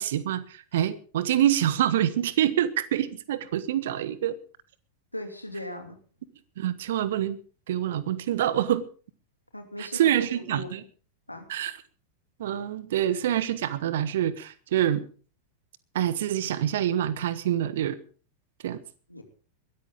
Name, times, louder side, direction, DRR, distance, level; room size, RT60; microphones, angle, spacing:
voice 1, 0.0-4.3 6.6-7.4 7.7-8.8 9.8-10.8 11.5-11.7 12.4-15.0 15.9-18.0 18.6-18.8, right 11 dB, 55° right, 16 dB, 1.3 m, -26 dB
voice 2, 5.1-6.0 9.5-10.7 11.3-11.5 19.1-19.2, left 1 dB, 85° left, 5 dB, 2.9 m, -38 dB
21.5 x 13.5 x 3.8 m, 0.40 s
figure-of-eight pair, 90°, 0 cm